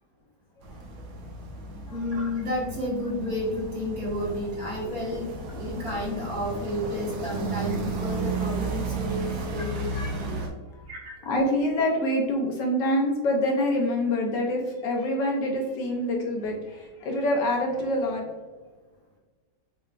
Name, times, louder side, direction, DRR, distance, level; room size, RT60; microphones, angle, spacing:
sound 1, 0.6-10.5, right 4 dB, 75° right, 1.6 m, -34 dB
voice 1, 1.9-10.1 10.9-11.3, left 1 dB, 50° right, -5 dB, 1.7 m, -31 dB
voice 2, 11.3-18.2, left 1 dB, 70° left, 0 dB, 1.3 m, -26 dB
6.7 x 3.3 x 2.4 m, 1.3 s
omnidirectional pair, 2.2 m